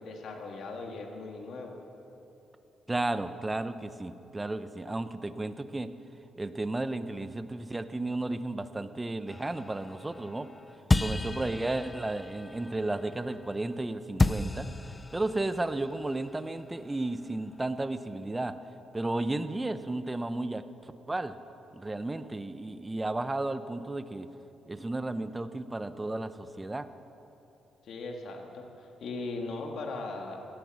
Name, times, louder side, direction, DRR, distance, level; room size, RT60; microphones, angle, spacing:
voice 1, 0.0-1.8 27.8-30.4, left 3 dB, 65° left, 2 dB, 2.1 m, -39 dB
voice 2, 2.9-5.9 6.4-10.5 11.0-14.7 15.1-18.5 18.9-21.4 21.7-24.3 24.7-26.9, right 2 dB, 15° right, 11 dB, 0.8 m, -33 dB
sound 1, 9.3-13.8 14.2-17.6, left 2 dB, 20° left, 0.5 m, -33 dB
16.5 x 11.5 x 6.4 m, 2.9 s
cardioid pair, 90°, 0 cm